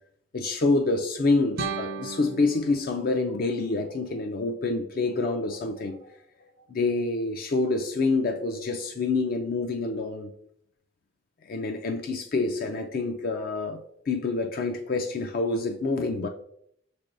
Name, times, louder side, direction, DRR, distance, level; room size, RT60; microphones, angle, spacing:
voice 1, 0.3-6.2 6.7-10.3 11.5-13.8 14.1-16.3, left 3 dB, 50° left, 0.4 m, -27 dB
sound 1, 1.6-4.6, right 4 dB, 55° right, 0.5 m, -37 dB
5.9 x 3.3 x 2.5 m
head